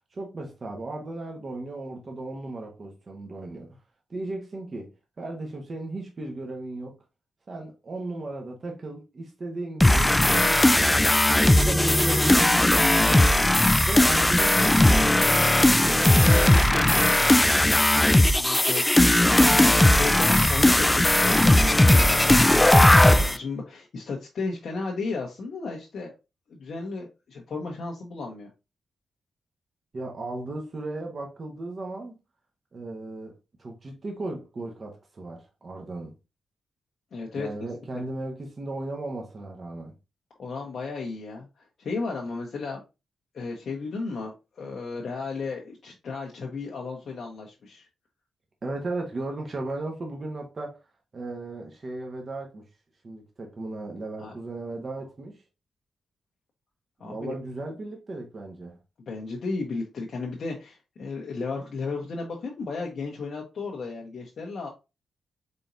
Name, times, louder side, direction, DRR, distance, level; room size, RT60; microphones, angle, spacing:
voice 1, 0.1-3.7 4.1-4.9 5.2-7.0 7.5-11.1 11.6-13.3 13.9-17.8 19.4-19.6 29.9-32.1 32.7-33.3 33.6-36.1 37.4-39.9 48.6-50.8 51.1-52.6 53.0-55.4 57.0-58.8, right 2 dB, 50° right, 1.2 m, -36 dB
sound 1, 9.8-23.4, left 1 dB, 15° left, 0.3 m, -18 dB
voice 2, 18.4-19.3 19.9-26.1 26.5-28.5 37.1-37.5 40.4-42.8 43.3-47.9 54.2-54.3 57.0-57.3 59.1-64.7, left 4 dB, 65° left, 0.9 m, -34 dB
4.1 x 3.7 x 2.6 m
hypercardioid pair, 40°, 0 cm